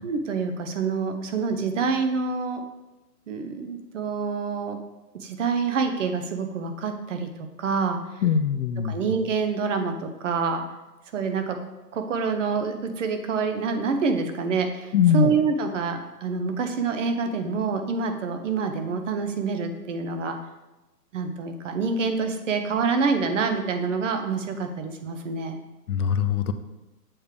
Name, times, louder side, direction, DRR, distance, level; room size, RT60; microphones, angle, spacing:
voice 1, 0.0-2.6 3.3-4.8 5.2-7.3 7.6-8.0 8.9-10.6 11.1-11.6 11.9-20.4 21.1-25.6, right 5 dB, 50° right, 7 dB, 0.8 m, -27 dB
voice 2, 8.2-9.0 14.9-15.3 25.9-26.5, left 7 dB, 65° left, 10 dB, 0.7 m, -21 dB
7.1 x 3.3 x 5.1 m, 1.0 s
hypercardioid pair, 145°, 49 cm